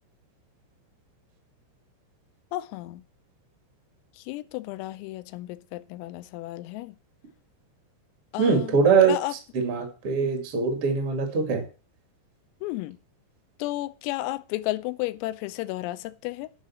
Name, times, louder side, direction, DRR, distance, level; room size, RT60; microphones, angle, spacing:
voice 1, 2.5-3.0 4.2-7.0 8.3-8.8 9.1-9.3 12.6-13.0 13.6-16.5, left 17 dB, 90° left, 3.4 m, -33 dB
voice 2, 8.4-9.2 9.5-11.6, right 5 dB, 40° right, 2.2 m, -22 dB
10.5 x 5.7 x 7.2 m
omnidirectional pair, 5.9 m